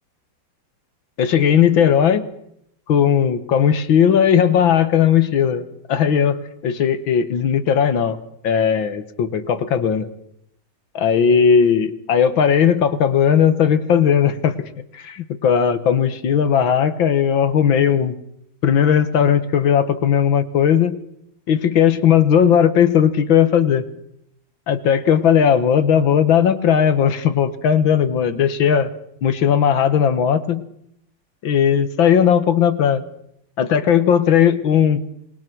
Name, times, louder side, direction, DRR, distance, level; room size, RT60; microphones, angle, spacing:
voice 1, 1.2-2.2 2.9-5.6 5.9-6.4 6.6-8.2 8.4-10.1 10.9-14.5 14.9-18.2 18.6-21.0 21.5-23.8 24.7-28.9 29.2-30.6 31.4-33.0 33.6-35.0, left 8 dB, 85° left, 11 dB, 2.2 m, -17 dB
27.0 x 21.0 x 6.2 m, 0.75 s
omnidirectional pair, 2.1 m